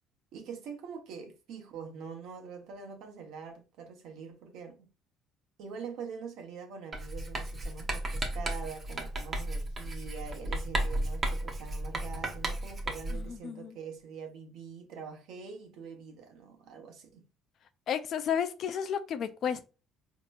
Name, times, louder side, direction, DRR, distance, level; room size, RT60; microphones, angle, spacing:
voice 1, 0.3-4.9 5.6-17.3, right 6 dB, 65° right, 0.9 m, -44 dB
Writing, 6.9-13.3, right 1 dB, 25° right, 0.7 m, -34 dB
voice 2, 13.1-13.8 17.9-19.6, left 8 dB, 45° left, 0.4 m, -32 dB
4.2 x 2.8 x 2.4 m
cardioid pair, 160°, 0 cm